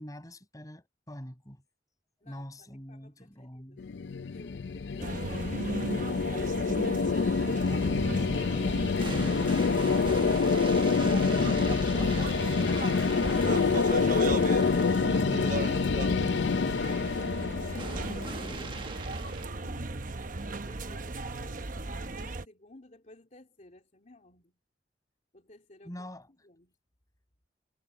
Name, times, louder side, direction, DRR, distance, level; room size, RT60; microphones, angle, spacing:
voice 1, 0.0-1.6 2.2-3.9 25.8-26.3, equal, 20° left, 5.7 m, -44 dB
voice 2, 2.2-3.8 4.2-8.2 16.3-17.0 17.6-19.1 19.5-20.0 20.3-24.6 25.3-26.1 26.4-26.7, left 2 dB, 45° left, 3.3 m, -55 dB
sound 1, 3.8-18.8, left 4 dB, 80° left, 0.5 m, -27 dB
sound 2, 5.0-22.4, right 2 dB, 50° right, 0.9 m, -36 dB
sound 3, 6.8-7.7 8.0-8.2 9.0-15.8 16.8-17.1 17.7-19.5, right 3 dB, 30° right, 1.5 m, -43 dB
head